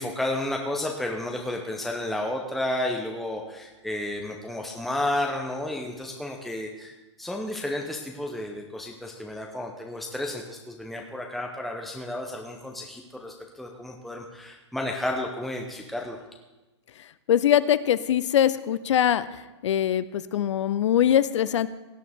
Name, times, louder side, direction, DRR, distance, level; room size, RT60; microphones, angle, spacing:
voice 1, 0.0-16.2, left 1 dB, ahead, 0 dB, 0.9 m, -32 dB
voice 2, 17.3-19.3 19.6-21.7, left 10 dB, 75° left, 15 dB, 0.6 m, -22 dB
17.0 x 9.2 x 3.6 m, 1.1 s
hypercardioid pair, 130°, 15 cm